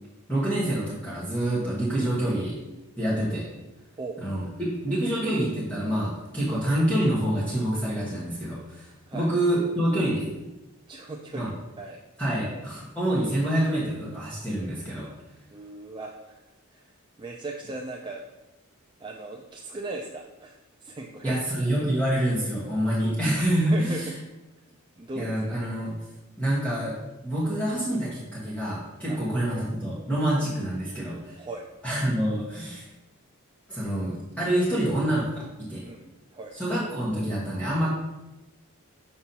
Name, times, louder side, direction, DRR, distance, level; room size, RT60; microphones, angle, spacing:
voice 1, 0.3-2.6 3.0-3.5 4.2-10.3 11.3-11.5 12.2-15.1 21.2-24.1 25.1-25.9 26.4-27.0 27.2-31.4 31.8-32.9 33.7-35.8 36.5-37.9, right 1 dB, 5° left, -9 dB, 1.4 m, -27 dB
voice 2, 10.9-12.0 15.5-16.4 16.7-18.2 19.0-21.4 23.0-23.2 23.7-24.2 25.0-25.4 29.1-29.2 31.4-31.7 35.8-36.6, right 2 dB, 20° right, 0 dB, 0.4 m, -38 dB
7.0 x 5.3 x 2.9 m, 1.0 s
head